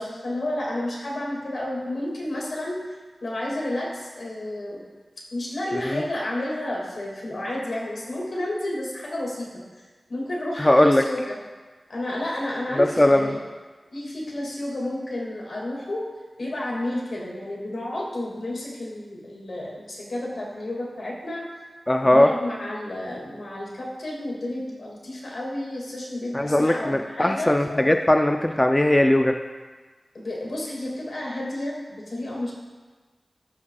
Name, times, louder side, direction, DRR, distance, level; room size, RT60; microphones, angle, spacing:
voice 1, 0.0-2.8 3.2-4.8 5.3-9.6 10.1-11.4 11.9-13.4 13.9-16.0 16.4-21.4 22.0-27.9 30.1-32.5, left 1 dB, 80° left, -4 dB, 1.8 m, -31 dB
voice 2, 10.6-11.0 12.8-13.3 21.9-22.3 26.3-29.3, left 1 dB, 20° left, 5 dB, 0.3 m, -19 dB
13.0 x 5.7 x 2.2 m, 1.4 s
wide cardioid pair, 90°, 0 cm